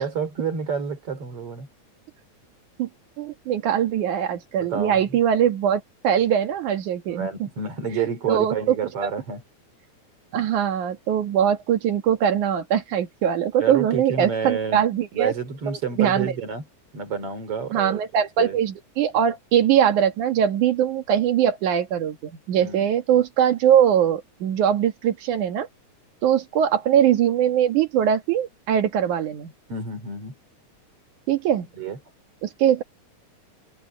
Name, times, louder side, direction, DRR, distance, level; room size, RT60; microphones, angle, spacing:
voice 1, 0.0-1.7 4.6-5.2 7.1-9.4 13.6-14.9 15.1-16.6 16.9-18.0 18.4-18.6 22.6-22.9 29.7-30.3 31.7-32.0, right 5 dB, 50° right, 4.0 m, -29 dB
voice 2, 3.2-7.5 7.9-8.8 10.3-15.3 15.7-16.3 17.7-25.7 26.2-29.5 31.3-31.7 32.4-32.8, right 9 dB, 85° right, 3.1 m, -22 dB
omnidirectional pair, 3.4 m